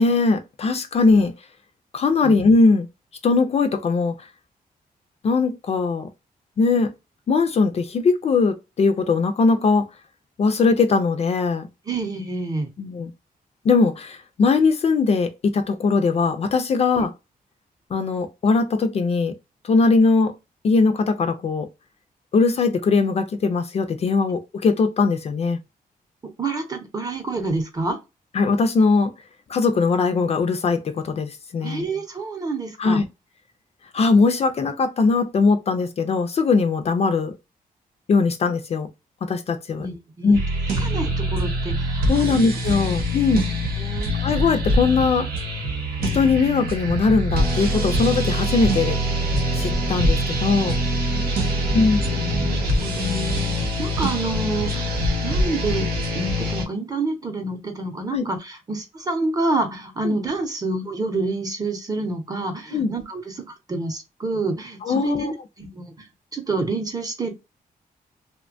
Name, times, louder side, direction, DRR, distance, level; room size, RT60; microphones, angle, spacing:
voice 1, 0.0-1.3 1.9-2.9 3.2-4.1 5.2-6.1 6.6-6.9 7.3-9.9 10.4-11.7 12.8-13.1 13.6-17.1 17.9-19.3 19.6-20.3 20.6-21.7 22.3-25.6 28.3-29.1 29.5-31.9 32.8-33.0 33.9-37.3 38.1-38.9 39.2-39.9 40.2-40.4 42.1-43.4 44.2-45.3 46.1-49.0 49.5-50.8 51.7-52.2 58.1-58.2 60.0-60.2 62.7-62.9 64.8-65.3, left 4 dB, 45° left, 0.4 m, -20 dB
voice 2, 11.9-12.7 17.0-17.1 26.4-28.0 31.6-33.0 39.8-40.4 40.8-42.4 42.8-43.0 43.3-43.4 43.8-44.1 51.1-51.9 52.4-55.0 55.2-66.0 66.3-67.3, right 2 dB, 25° right, 0.7 m, -28 dB
sound 1, 40.3-56.6, equal, 85° right, 0.9 m, -24 dB
2.8 x 2.1 x 2.5 m
wide cardioid pair, 145°, 15 cm